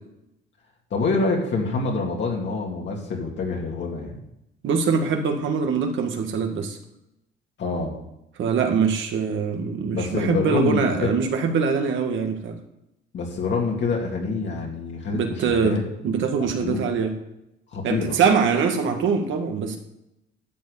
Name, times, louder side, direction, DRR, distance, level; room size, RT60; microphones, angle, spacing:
voice 1, 0.9-4.2 7.6-8.0 9.9-11.1 13.1-15.8 16.6-16.8 17.7-18.2, left 3 dB, 65° left, -1 dB, 2.8 m, -26 dB
voice 2, 4.6-6.8 8.4-12.6 15.1-17.1 17.8-19.8, right 5 dB, 75° right, 4 dB, 1.9 m, -23 dB
12.5 x 4.6 x 8.5 m, 0.85 s
cardioid pair, 90°, 20 cm